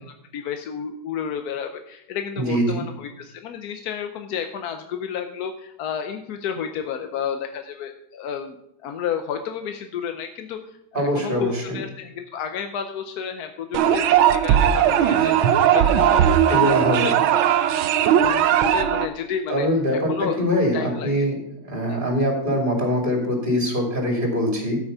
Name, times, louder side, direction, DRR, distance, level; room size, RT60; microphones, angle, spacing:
voice 1, 0.0-8.6 8.8-17.2 18.2-19.7 19.9-20.4 20.7-21.3 21.9-22.0, left 7 dB, 65° left, 6 dB, 1.0 m, -31 dB
voice 2, 2.4-2.8 10.9-11.8 16.5-17.2 19.5-21.3 21.7-24.8, equal, 25° right, 1 dB, 2.8 m, -23 dB
sound 1, 13.7-19.1, right 10 dB, 90° right, 1.5 m, -18 dB
13.0 x 6.3 x 5.5 m, 0.84 s
omnidirectional pair, 2.2 m